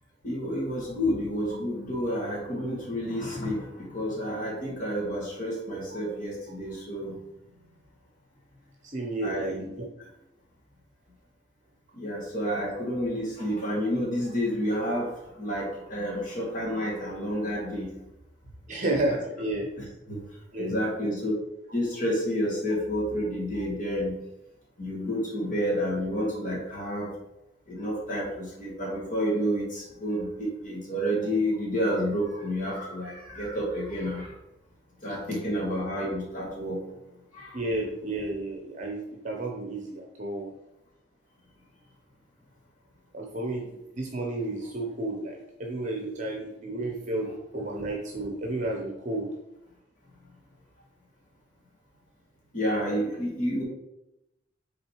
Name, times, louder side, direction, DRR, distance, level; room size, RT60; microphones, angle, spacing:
voice 1, 0.2-7.2 9.2-9.6 11.9-17.9 18.9-19.2 19.8-20.2 20.6-21.3 21.7-24.2 24.8-27.1 27.7-34.3 35.0-36.8 37.3-37.6 47.3-47.4 52.5-53.6, equal, 45° left, -4 dB, 2.0 m, -30 dB
voice 2, 8.8-9.5 18.7-19.7 20.5-20.7 37.5-40.5 43.1-49.3, right 2 dB, 40° right, 0 dB, 0.9 m, -32 dB
6.1 x 4.2 x 4.7 m, 0.90 s
head